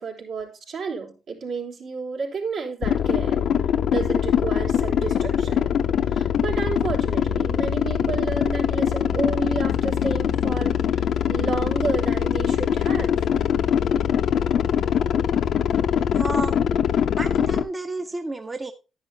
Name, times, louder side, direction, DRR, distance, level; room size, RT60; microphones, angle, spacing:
voice 1, 0.0-3.4 3.9-5.8 6.1-10.8 11.3-13.1, right 4 dB, 70° right, -1 dB, 3.7 m, -31 dB
sound 1, 2.8-17.6, left 9 dB, 70° left, 0.7 m, -22 dB
voice 2, 16.0-16.6 17.2-18.7, right 2 dB, 20° right, 7 dB, 0.8 m, -31 dB
10.5 x 9.9 x 2.8 m, 0.30 s
cardioid pair, 90°, 0 cm